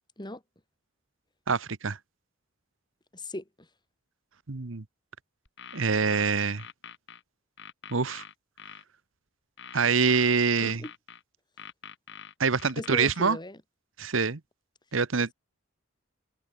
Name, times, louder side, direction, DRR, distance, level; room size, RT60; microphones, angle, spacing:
voice 1, 1.5-2.0 4.5-4.8 5.7-6.6 7.9-8.2 9.7-10.8 12.4-13.4 14.0-14.4 14.9-15.3, right 5 dB, 75° right, 1.1 m, -25 dB
voice 2, 3.1-3.7 10.6-10.9 12.8-13.6, left 1 dB, 20° left, 3.6 m, -37 dB
sound 1, 5.5-7.2 7.6-8.8 9.6-11.2 11.6-13.2, left 8 dB, 65° left, 6.6 m, -45 dB
head